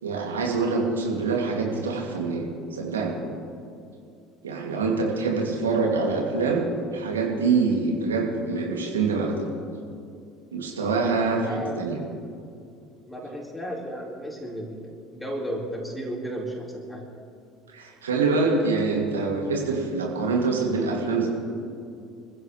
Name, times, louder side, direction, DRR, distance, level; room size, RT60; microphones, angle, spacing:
voice 1, 0.0-3.2 4.4-9.5 10.5-12.0 17.7-21.3, right 4 dB, 80° right, 0 dB, 2.6 m, -25 dB
voice 2, 11.3-11.8 13.1-17.1, equal, 5° left, -3 dB, 4.6 m, -34 dB
27.0 x 15.0 x 3.3 m, 2.4 s
figure-of-eight pair, 65°, 0 cm